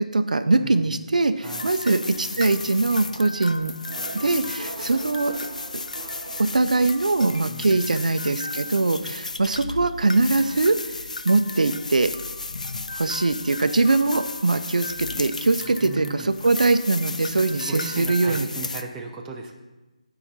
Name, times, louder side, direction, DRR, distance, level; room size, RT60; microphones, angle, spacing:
voice 1, 0.0-3.7 4.1-5.3 6.4-10.8 11.2-12.1 12.9-18.5, right 3 dB, 75° right, 10 dB, 0.6 m, -22 dB
voice 2, 0.5-1.0 1.4-1.7 7.4-8.1 15.5-16.3 17.5-19.5, right 4 dB, 10° right, 0 dB, 0.5 m, -37 dB
sound 1, 1.4-18.8, left 3 dB, 70° left, 0.6 m, -34 dB
sound 2, 3.9-7.4, right 3 dB, 40° right, 0.8 m, -41 dB
14.5 x 4.9 x 4.0 m, 1.1 s
figure-of-eight pair, 165°, 4 cm